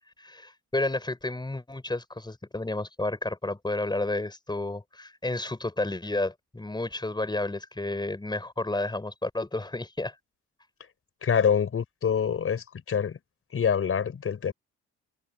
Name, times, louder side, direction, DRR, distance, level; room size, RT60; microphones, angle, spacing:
voice 1, 0.2-10.1, left 2 dB, 15° left, 6.0 m, -31 dB
voice 2, 11.2-13.2 13.5-14.5, left 7 dB, 45° left, 4.4 m, -26 dB
cardioid pair, 90°, 30 cm